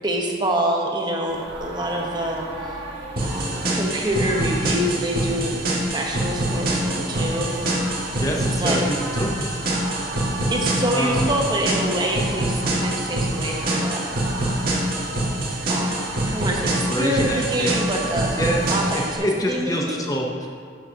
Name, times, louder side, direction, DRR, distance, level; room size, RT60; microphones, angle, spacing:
voice 1, 0.0-2.8 3.2-7.8 8.6-8.9 10.5-14.1 15.7-20.1, right 1 dB, 25° right, 0 dB, 0.9 m, -26 dB
sound 1, 1.3-19.0, right 2 dB, 85° right, 1.3 m, -35 dB
sound 2, 3.2-19.2, right 1 dB, 50° right, 1.6 m, -25 dB
voice 2, 8.2-9.3 10.9-11.3 16.6-17.7 18.4-18.6 18.9-20.5, equal, 20° left, 0 dB, 0.6 m, -26 dB
11.0 x 7.7 x 2.8 m, 2.1 s
head